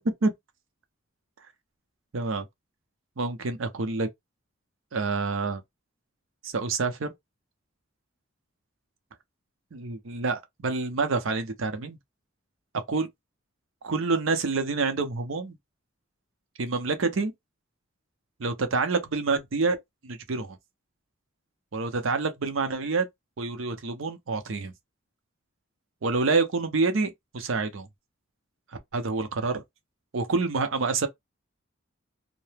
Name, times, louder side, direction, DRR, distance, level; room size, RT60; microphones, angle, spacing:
voice 1, 2.1-2.5 3.2-4.1 4.9-5.6 6.4-7.1 9.7-12.0 12.9-13.1 13.8-15.6 16.6-17.3 18.4-19.8 20.0-20.6 21.7-23.1 23.4-24.7 26.0-27.9 28.9-29.6 30.1-31.1, right 4 dB, 75° right, 0.6 m, -27 dB
2.8 x 2.1 x 3.3 m
head